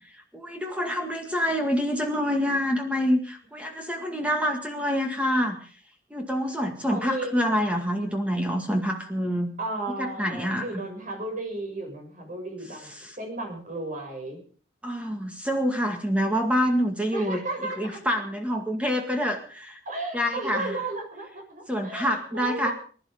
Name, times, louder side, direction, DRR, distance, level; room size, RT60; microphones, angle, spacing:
voice 1, 0.3-5.6 6.1-9.5 10.0-10.8 13.0-13.2 14.8-17.4 17.8-19.8 20.1-20.8 21.7-22.7, equal, 5° right, 3 dB, 2.0 m, -26 dB
voice 2, 6.9-7.3 9.6-12.9 13.2-14.4 17.1-18.0 19.8-22.7, right 2 dB, 45° right, 2 dB, 6.6 m, -34 dB
21.0 x 12.0 x 5.2 m, 0.42 s
head